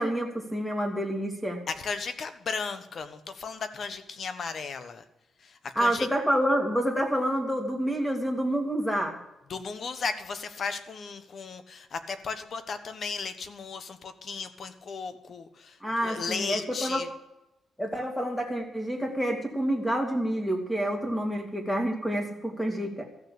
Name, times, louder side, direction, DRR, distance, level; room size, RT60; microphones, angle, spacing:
voice 1, 0.0-1.6 5.8-9.2 15.8-17.0 17.8-23.1, equal, 5° left, 3 dB, 2.4 m, -28 dB
voice 2, 1.7-5.0 5.4-6.1 9.5-17.1, left 5 dB, 50° left, 10 dB, 1.2 m, -35 dB
14.0 x 6.8 x 8.4 m, 0.89 s
cardioid pair, 130°, 0 cm